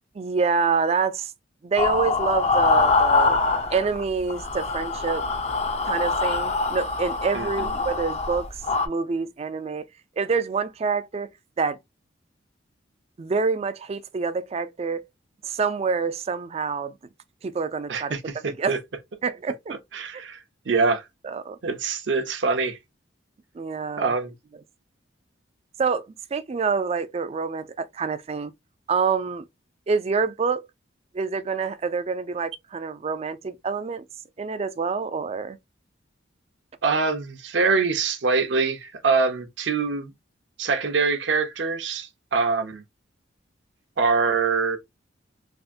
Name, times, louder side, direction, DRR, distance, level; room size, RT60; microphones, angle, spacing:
voice 1, 0.2-1.3 1.6-3.4 3.7-5.3 5.8-8.5 8.8-9.9 10.2-11.3 11.6-11.8 13.2-15.0 15.4-16.9 17.4-18.1 18.6-18.8 19.2-19.8 21.2-21.6 23.6-24.1 25.8-26.1 26.3-28.5 28.9-29.4 29.9-30.7 31.1-34.0 34.4-35.6, right 5 dB, 35° right, 0.3 m, -26 dB
sound 1, 1.8-4.0 4.3-8.9, left 3 dB, 35° left, 0.5 m, -24 dB
voice 2, 7.3-7.7 17.9-18.8 19.9-20.4 20.7-21.0 21.6-22.8 24.0-24.3 36.8-40.1 40.6-42.8 44.0-44.8, right 4 dB, 70° right, 0.7 m, -24 dB
3.4 x 2.5 x 2.5 m
head